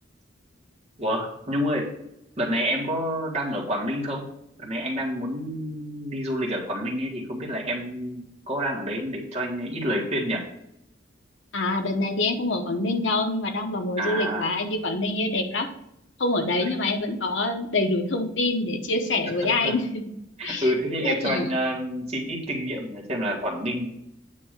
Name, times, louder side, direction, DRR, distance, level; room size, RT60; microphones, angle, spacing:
voice 1, 1.0-1.9 2.4-4.2 4.6-10.4 14.0-14.4 16.6-16.7 19.4-19.7 20.4-23.9, equal, 35° right, -2 dB, 1.6 m, -28 dB
voice 2, 11.5-15.7 16.2-20.1 20.4-20.7 21.0-21.5, left 2 dB, 80° left, 4 dB, 1.0 m, -26 dB
8.8 x 3.0 x 6.4 m, 0.79 s
head